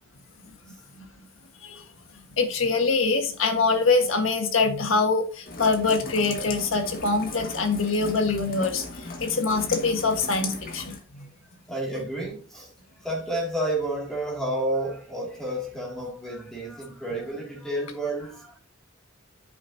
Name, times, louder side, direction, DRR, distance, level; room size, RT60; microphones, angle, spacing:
voice 1, 0.7-1.0 1.6-1.8 2.4-11.3, left 4 dB, 80° left, 1.7 m, -24 dB
Rain, 5.5-11.0, left 3 dB, 50° left, 1.8 m, -37 dB
voice 2, 11.7-12.7 13.0-18.6, right 1 dB, 5° left, 2.7 m, -30 dB
9.5 x 7.2 x 2.9 m
head